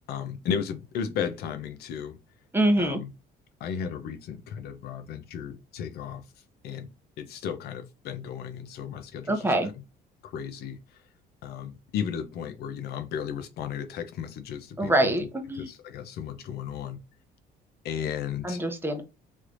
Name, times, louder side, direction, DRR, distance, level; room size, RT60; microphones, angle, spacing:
voice 1, 0.1-2.2 2.8-3.1 3.6-6.2 6.6-6.9 7.2-9.5 10.2-11.0 11.4-15.2 15.6-17.0 17.8-18.6, left 8 dB, 70° left, 0.6 m, -34 dB
voice 2, 2.5-3.0 9.3-9.7 14.8-15.7 18.4-19.0, right 1 dB, 15° right, 0.7 m, -24 dB
3.2 x 3.1 x 2.5 m
cardioid pair, 110°, 17 cm